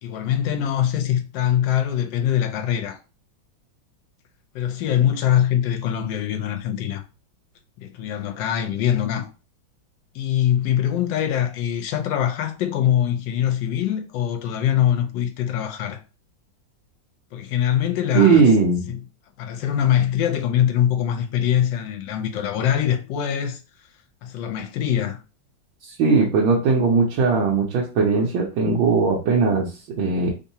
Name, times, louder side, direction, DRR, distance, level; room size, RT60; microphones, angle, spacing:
voice 1, 0.0-3.0 4.5-7.0 7.8-9.3 10.1-16.0 17.3-18.4 19.4-23.6 24.2-25.2, left 10 dB, 75° left, 1.3 m, -23 dB
voice 2, 18.1-18.9 25.8-30.3, right 4 dB, 85° right, 1.5 m, -19 dB
3.5 x 2.7 x 2.7 m
omnidirectional pair, 2.1 m